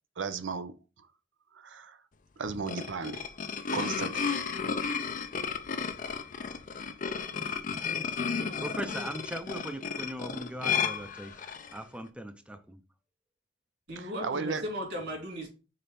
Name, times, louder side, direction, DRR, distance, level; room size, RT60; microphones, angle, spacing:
voice 1, 0.2-0.8 1.5-2.0 2.4-3.3 3.7-4.3 14.2-14.6, right 4 dB, 85° right, 0.6 m, -34 dB
sound 1, 2.5-11.8, left 6 dB, 45° left, 0.5 m, -33 dB
voice 2, 8.6-11.4 11.7-12.8, right 1 dB, 5° right, 0.6 m, -39 dB
voice 3, 13.9-15.5, equal, 65° right, 2.9 m, -36 dB
5.2 x 4.4 x 4.2 m
head